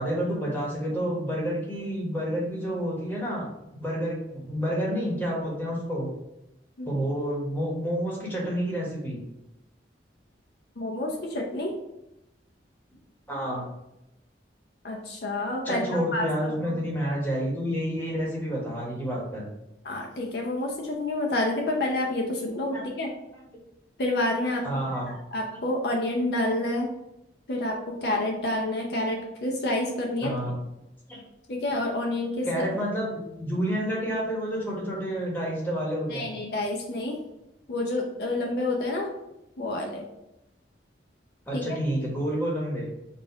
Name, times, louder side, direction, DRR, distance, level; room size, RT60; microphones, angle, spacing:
voice 1, 0.0-6.1 6.8-9.2 13.3-13.7 15.6-19.5 22.7-22.8 23.3-23.4 24.6-25.1 30.2-30.6 31.1-31.2 32.4-36.3 41.5-42.9, equal, 10° left, -4 dB, 1.2 m, -29 dB
voice 2, 10.8-11.7 14.8-16.3 16.6-16.7 19.8-23.1 24.0-24.6 25.1-26.9 27.5-30.3 31.5-32.5 36.1-37.2 37.7-39.1 39.6-40.0 41.5-41.8, left 1 dB, 60° left, 0 dB, 0.6 m, -28 dB
4.2 x 2.5 x 4.4 m, 0.87 s
head